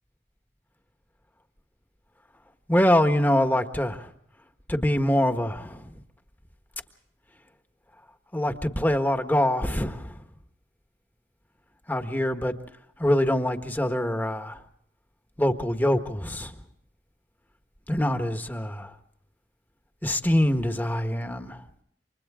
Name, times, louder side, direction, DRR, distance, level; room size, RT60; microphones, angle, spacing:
voice 1, 2.7-4.1 4.7-5.9 8.3-10.2 11.9-12.5 13.0-14.6 15.4-16.5 17.9-18.9 20.0-21.6, left 1 dB, 10° left, 7 dB, 1.5 m, -24 dB
29.0 x 26.0 x 3.7 m, 0.70 s
head